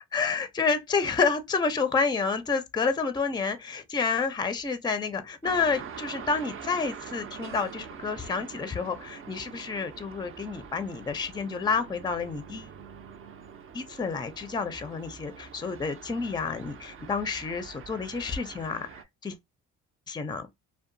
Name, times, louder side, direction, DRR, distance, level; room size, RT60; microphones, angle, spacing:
voice 1, 0.1-12.7 13.7-18.9 19.2-19.4 20.1-20.5, left 5 dB, 15° left, 0.4 m, -29 dB
sound 1, 5.4-19.0, right 7 dB, 45° right, 0.5 m, -44 dB
2.7 x 2.2 x 2.5 m
cardioid pair, 90°, 30 cm